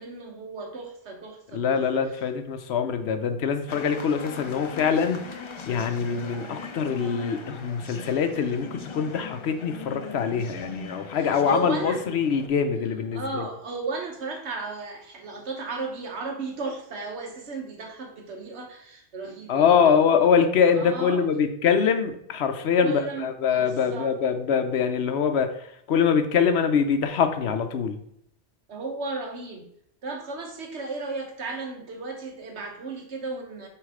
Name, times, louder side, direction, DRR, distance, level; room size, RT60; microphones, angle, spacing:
voice 1, 0.0-1.8 11.1-12.0 13.1-20.3 20.7-21.3 22.8-24.1 28.7-29.7 30.0-33.7, right 3 dB, 75° right, 3 dB, 1.4 m, -35 dB
voice 2, 1.5-5.2 5.7-13.5 19.5-28.0, left 6 dB, 70° left, 8 dB, 0.9 m, -24 dB
sound 1, 3.7-12.5, left 4 dB, 45° left, 0.4 m, -40 dB
6.3 x 3.3 x 4.9 m, 0.71 s
omnidirectional pair, 1.2 m